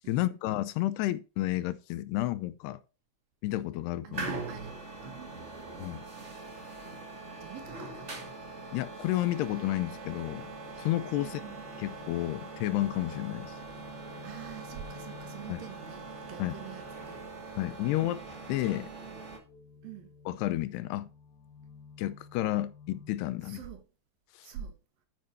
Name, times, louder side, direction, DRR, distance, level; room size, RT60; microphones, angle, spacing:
voice 1, 0.1-2.8 3.4-4.3 5.8-6.0 8.7-10.5 10.8-11.4 11.8-13.5 15.5-15.6 16.4-16.6 17.6-18.2 18.5-18.9 20.3-21.1 22.0-23.6 24.4-24.5, left 15 dB, 85° left, 2.7 m, -31 dB
voice 2, 4.0-4.8 5.0-5.6 7.4-8.1 11.2-11.6 14.2-18.2 19.8-20.1 23.4-23.8 24.4-24.8, right 9 dB, 65° right, 2.9 m, -46 dB
sound 1, 4.1-19.4, right 3 dB, 40° right, 0.9 m, -42 dB
sound 2, 10.1-23.1, left 5 dB, 60° left, 2.1 m, -53 dB
9.7 x 9.5 x 2.7 m
omnidirectional pair, 4.7 m